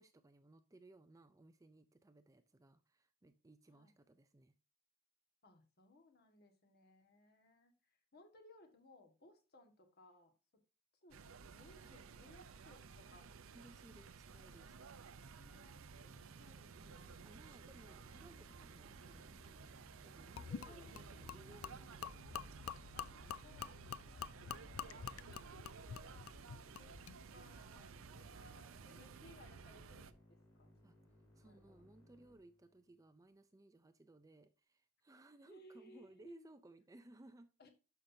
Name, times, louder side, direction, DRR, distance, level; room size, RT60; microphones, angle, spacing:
voice 1, 0.0-4.5 11.8-11.9 13.5-14.8 16.8-22.2 23.0-23.4 24.2-24.8 30.8-37.5, right 2 dB, 15° right, 10 dB, 0.4 m, -62 dB
voice 2, 5.4-10.3 11.0-13.3 15.4-17.3 20.6-21.4 22.9-23.1 23.4-27.0 27.3-30.7 31.4-31.8 35.4-36.5 37.6-37.7, left 1 dB, 50° left, 4 dB, 1.6 m, -64 dB
sound 1, 11.1-30.1, right 5 dB, 75° right, 0.6 m, -55 dB
Musical instrument, 15.9-33.0, equal, 25° left, 4.0 m, -65 dB
Gurgling / Liquid, 20.4-27.2, left 8 dB, 75° left, 0.4 m, -48 dB
11.5 x 5.8 x 2.7 m, 0.32 s
head